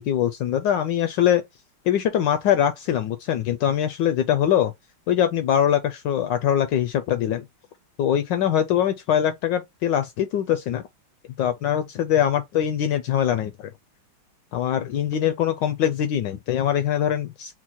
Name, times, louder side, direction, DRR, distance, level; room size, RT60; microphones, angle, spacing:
voice 1, 0.0-1.4 1.9-4.7 5.1-7.4 8.0-10.8 11.4-13.7 14.5-17.5, left 10 dB, 75° left, 1.1 m, -22 dB
4.5 x 2.1 x 4.2 m
omnidirectional pair, 2.3 m